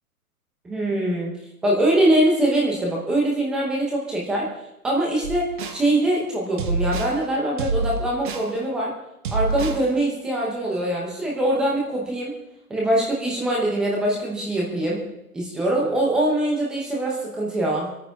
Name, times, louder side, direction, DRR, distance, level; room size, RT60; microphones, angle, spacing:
voice 1, 0.6-1.3 1.6-4.5 4.8-8.9 9.3-12.3 12.7-15.0 15.3-17.9, right 1 dB, ahead, -3 dB, 0.7 m, -23 dB
sound 1, 5.2-5.8 6.6-7.2 7.6-8.5 9.2-9.8, right 3 dB, 35° right, 1.3 m, -26 dB
24.5 x 9.2 x 4.6 m, 0.89 s
hypercardioid pair, 165°, 45 cm